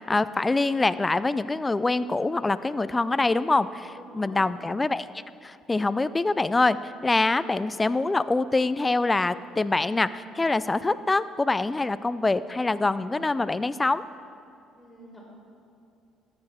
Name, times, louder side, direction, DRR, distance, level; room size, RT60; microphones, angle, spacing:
voice 1, 0.0-5.1 5.4-14.0, left 3 dB, 20° left, 15 dB, 0.4 m, -25 dB
voice 2, 3.9-4.5 14.8-15.3, equal, ahead, -10 dB, 2.9 m, -47 dB
14.0 x 8.7 x 4.2 m, 2.6 s
cardioid pair, 95°, 0 cm